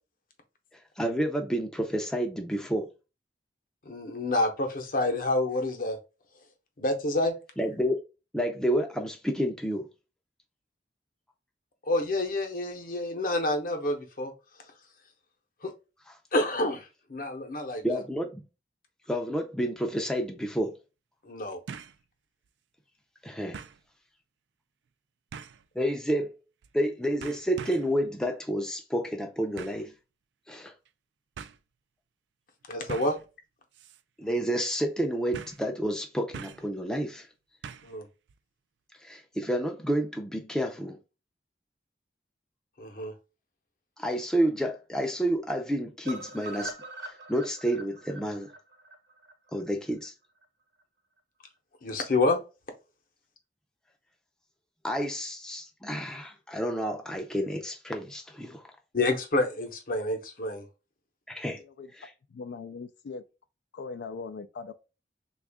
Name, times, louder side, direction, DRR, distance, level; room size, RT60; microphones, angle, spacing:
voice 1, 1.0-2.9 7.6-8.0 8.3-9.9 17.8-18.4 19.1-20.7 23.2-23.6 25.8-26.3 26.7-29.9 30.5-30.7 34.2-37.3 39.0-41.0 44.0-46.8 47.0-48.5 49.5-50.1 54.8-58.7 61.3-61.6 61.9-62.1, equal, 5° left, 0.4 m, -30 dB
voice 2, 3.9-6.0 6.8-7.3 11.8-14.3 15.6-15.7 16.3-18.0 21.2-21.6 32.7-33.2 37.8-38.1 42.8-43.1 51.8-52.4 58.9-60.6, left 2 dB, 50° left, 0.8 m, -28 dB
sound 1, 19.8-19.9 21.7-22.0 22.4-22.5 23.5-23.8 25.3-25.7 26.6-26.9 27.2-28.0 29.6-29.9 30.9-31.0 31.4-31.6 32.9-33.3 33.7-34.0 34.3-34.4 35.3-35.7 36.3-36.7 37.6-38.0 38.3-38.4, right 6 dB, 90° right, 0.3 m, -42 dB
sound 2, 46.1-50.1 50.4-50.5 50.8-50.9 51.2-51.3, right 2 dB, 65° right, 1.0 m, -43 dB
voice 3, 62.3-63.2 63.7-64.7, left 4 dB, 75° left, 0.3 m, -40 dB
3.5 x 2.4 x 3.4 m
head